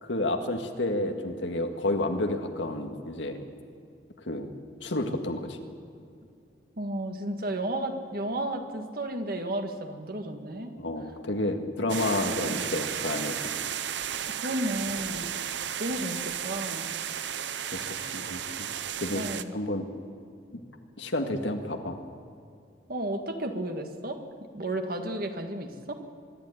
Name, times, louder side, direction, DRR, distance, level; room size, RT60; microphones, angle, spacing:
voice 1, 0.0-3.4 4.2-4.5 4.8-5.6 10.8-13.5 17.7-18.7 19.0-19.2 19.5-19.9 21.0-22.0, left 1 dB, 80° left, 5 dB, 1.9 m, -30 dB
voice 2, 6.8-10.7 12.3-12.6 14.2-16.9 19.1-19.5 22.9-24.2 24.5-25.9, right 1 dB, 50° right, 5 dB, 1.9 m, -33 dB
sound 1, 11.9-19.4, right 9 dB, 75° right, 0.8 m, -34 dB
24.0 x 11.5 x 9.6 m, 2.4 s
head